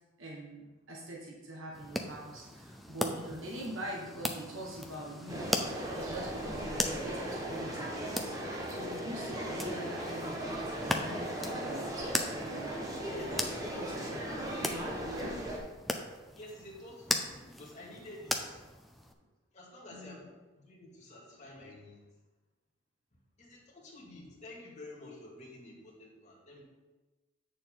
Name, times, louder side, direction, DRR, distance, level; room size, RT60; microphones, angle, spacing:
voice 1, 0.2-5.5 5.9-12.8 13.2-13.4 13.8-14.5 15.0-15.4 19.9-20.3, right 1 dB, 80° right, -2 dB, 1.4 m, -44 dB
sound 1, 1.7-19.1, left 1 dB, ahead, 0.5 m, -39 dB
sound 2, 5.3-15.6, equal, 15° right, 1.2 m, -37 dB
voice 2, 13.0-13.4 16.3-18.6 19.5-22.0 23.4-26.6, left 1 dB, 35° left, -4 dB, 2.3 m, -50 dB
8.4 x 6.7 x 3.8 m, 1.2 s
head